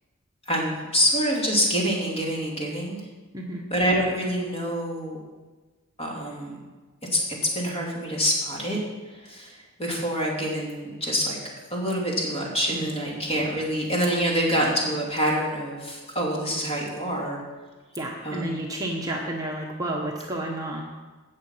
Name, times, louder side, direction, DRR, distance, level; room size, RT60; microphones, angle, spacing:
voice 1, 0.5-3.0 3.7-5.2 6.0-6.6 7.1-7.2 7.5-8.8 9.1-11.4 11.7-17.4 18.2-18.6, equal, 30° left, -3 dB, 3.0 m, -26 dB
voice 2, 3.3-3.6 12.7-13.2 17.9-20.8, right 1 dB, 15° right, -1 dB, 1.1 m, -31 dB
17.0 x 6.3 x 5.8 m, 1.3 s
head